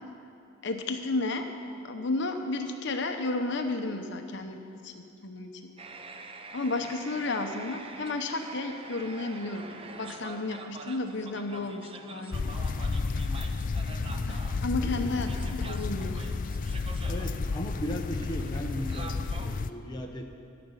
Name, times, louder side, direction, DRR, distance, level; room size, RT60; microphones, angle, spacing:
voice 1, 0.6-1.5 1.8-5.7 6.5-12.5 14.3-16.4, left 2 dB, 55° left, 5 dB, 0.8 m, -33 dB
sound 1, 5.8-19.6, right 3 dB, 25° right, 0.6 m, -46 dB
sound 2, 12.3-19.7, left 4 dB, 40° left, 0.4 m, -31 dB
voice 2, 17.1-20.2, equal, 20° left, 1 dB, 0.8 m, -37 dB
13.0 x 6.9 x 9.7 m, 2.6 s
head